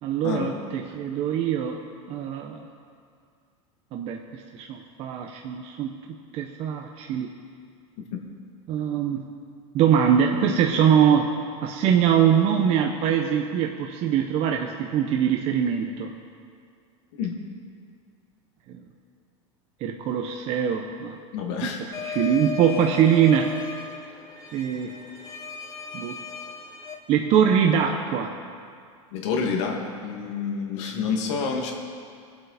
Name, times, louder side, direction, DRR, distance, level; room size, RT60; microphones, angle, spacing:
voice 1, 0.0-1.8 2.1-2.6 3.9-5.9 6.3-7.3 8.7-9.2 9.7-11.3 11.6-16.1 18.7-18.8 19.8-21.2 21.6-23.6 24.5-24.9 25.9-26.2 27.1-28.3, right 8 dB, 40° right, 2 dB, 0.8 m, -23 dB
voice 2, 21.3-21.8 29.1-31.7, left 5 dB, 70° left, 1 dB, 2.2 m, -28 dB
sound 1, 21.9-26.9, left 6 dB, 25° left, 1.4 m, -36 dB
22.5 x 8.0 x 4.1 m, 2.2 s
supercardioid pair, 145°, 16 cm